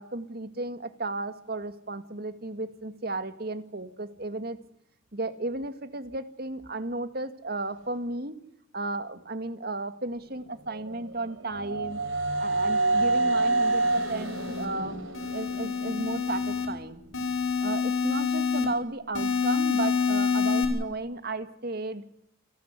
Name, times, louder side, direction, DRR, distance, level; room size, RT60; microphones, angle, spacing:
voice 1, 0.0-4.6 5.1-8.4 8.7-12.0 12.4-14.9 15.3-17.0 17.6-22.0, right 2 dB, 50° right, 10 dB, 2.0 m, -34 dB
sound 1, 10.7-16.6, right 2 dB, 80° right, 4.6 m, -28 dB
sound 2, 13.5-14.6 15.1-16.7 17.1-18.6 19.1-20.6, left 5 dB, 85° left, 6.7 m, -28 dB
29.5 x 13.0 x 9.8 m, 0.76 s
head